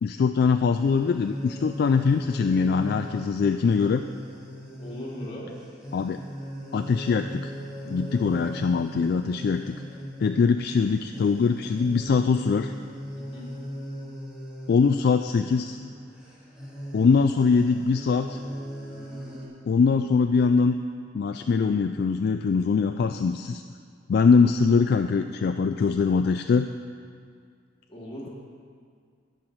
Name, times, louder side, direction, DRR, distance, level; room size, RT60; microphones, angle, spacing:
voice 1, 0.0-4.0 5.9-6.2 6.7-7.5 7.9-9.8 10.2-12.7 14.7-15.8 16.9-18.4 19.7-20.8 21.1-23.6 24.1-26.7, left 5 dB, 55° left, 7 dB, 0.3 m, -22 dB
sound 1, 0.7-19.5, equal, 5° right, 1.9 m, -39 dB
voice 2, 4.8-5.5 13.2-13.5 24.2-24.5 27.9-28.3, equal, 30° left, -5 dB, 2.2 m, -39 dB
16.5 x 5.8 x 4.6 m, 2.1 s
head